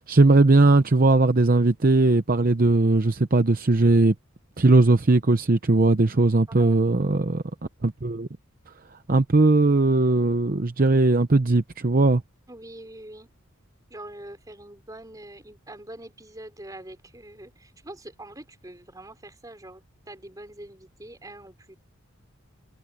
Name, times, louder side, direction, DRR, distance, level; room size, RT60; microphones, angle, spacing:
voice 1, 0.1-4.1 4.6-7.4 7.8-8.3 9.1-12.2, right 2 dB, 40° right, 0.8 m, -19 dB
voice 2, 12.5-13.3 13.9-21.8, right 1 dB, 15° right, 3.8 m, -44 dB
head